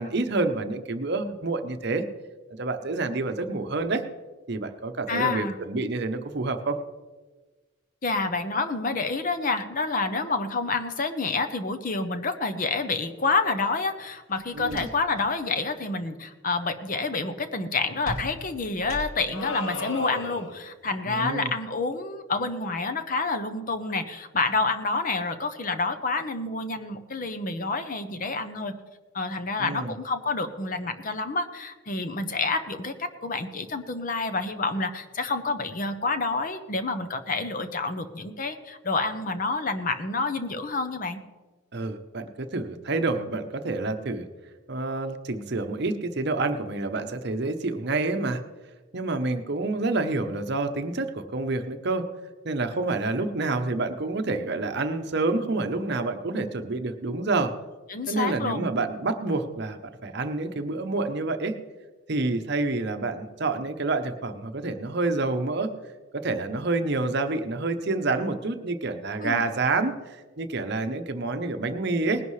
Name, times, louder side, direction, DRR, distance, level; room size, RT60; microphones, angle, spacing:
voice 1, 0.0-2.0 2.5-4.0 4.5-6.8 14.5-14.9 21.1-21.5 29.6-29.9 41.7-44.3 44.7-48.4 48.9-52.1 52.4-57.5 58.1-61.6 62.1-65.7 66.1-72.2, right 3 dB, 55° right, 7 dB, 0.8 m, -28 dB
voice 2, 5.1-5.6 8.0-28.8 29.1-41.2 57.9-58.7 69.2-69.5, left 3 dB, 40° left, 9 dB, 0.8 m, -28 dB
sound 1, 14.3-15.3 15.6-16.0 18.0-19.5, right 1 dB, 85° left, 2.6 m, -39 dB
sound 2, 19.3-20.7, left 2 dB, 70° left, 1.0 m, -34 dB
19.5 x 11.0 x 3.2 m, 1.3 s
head